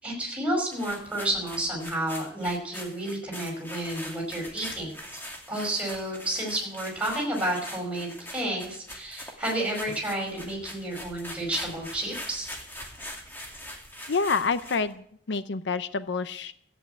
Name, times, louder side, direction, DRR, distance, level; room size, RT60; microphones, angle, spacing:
voice 1, 0.0-5.2 5.5-12.5, right 1 dB, 5° right, -1 dB, 5.3 m, -31 dB
sound 1, 0.7-14.9, equal, 10° left, 2.3 m, -42 dB
voice 2, 14.1-16.5, left 4 dB, 75° left, 13 dB, 0.7 m, -28 dB
14.5 x 8.5 x 9.3 m, 0.67 s
head